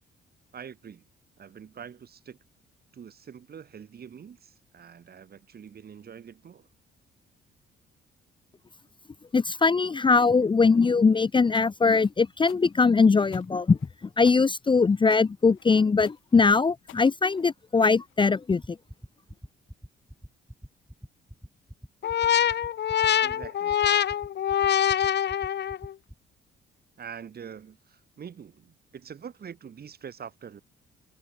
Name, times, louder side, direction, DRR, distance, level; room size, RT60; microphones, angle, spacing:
voice 1, 0.5-1.0 1.4-2.4 2.9-6.7 23.2-23.8 27.0-30.6, right 7 dB, 50° right, 6.8 m, -44 dB
voice 2, 9.3-13.8 14.2-18.6, left 4 dB, 25° left, 0.7 m, -21 dB
sound 1, 11.5-18.6, left 14 dB, 85° left, 6.0 m, -51 dB
sound 2, 18.5-26.1, equal, ahead, 1.4 m, -42 dB
sound 3, 22.0-25.9, left 10 dB, 60° left, 1.4 m, -24 dB
cardioid pair, 90°, 20 cm